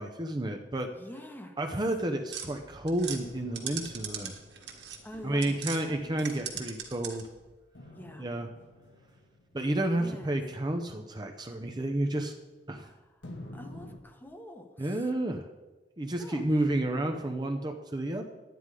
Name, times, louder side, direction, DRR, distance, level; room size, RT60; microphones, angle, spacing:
voice 1, 0.0-0.9 1.6-4.3 5.2-7.3 8.2-8.5 9.5-12.3 12.7-12.9 14.8-15.4 16.0-18.3, right 1 dB, 25° right, 4 dB, 0.7 m, -31 dB
voice 2, 0.9-1.6 5.0-6.2 7.9-8.3 10.0-10.4 12.8-13.0 13.5-15.1 16.2-16.5, equal, 10° left, 5 dB, 1.1 m, -47 dB
sound 1, 2.3-5.8 6.1-7.4, right 7 dB, 70° right, 1.6 m, -40 dB
sound 2, 3.2-6.9 7.7-12.8 13.2-14.0, left 1 dB, 90° left, 1.7 m, -51 dB
11.0 x 9.4 x 4.9 m, 1.2 s
head